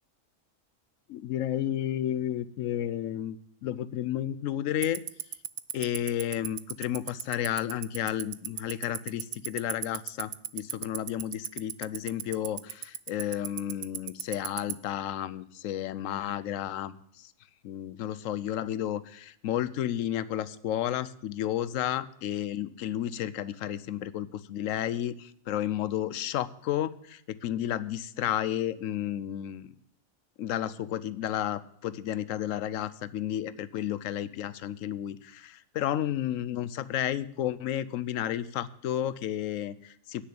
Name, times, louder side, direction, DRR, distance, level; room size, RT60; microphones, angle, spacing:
voice 1, 1.1-5.0 5.7-17.3 17.6-29.7 30.4-40.2, left 11 dB, 75° left, 16 dB, 1.0 m, -32 dB
Tick-tock, 4.8-14.7, right 13 dB, 70° right, 0.9 m, -32 dB
9.6 x 6.5 x 8.4 m, 0.67 s
omnidirectional pair, 1.4 m